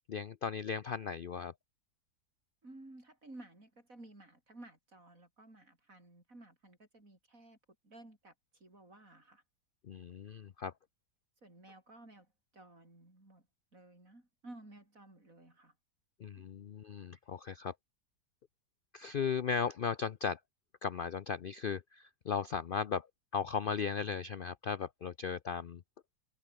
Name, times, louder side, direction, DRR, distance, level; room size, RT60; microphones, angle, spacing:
voice 1, 0.1-1.5 9.8-10.7 16.2-17.7 18.9-20.4 20.8-23.1 23.3-25.8, left 6 dB, 80° left, 0.4 m, -36 dB
voice 2, 2.6-7.6 7.8-9.4 11.4-12.3 12.5-13.4 13.7-15.7 16.4-16.5, right 2 dB, 55° right, 7.4 m, -55 dB
omnidirectional pair, 1.7 m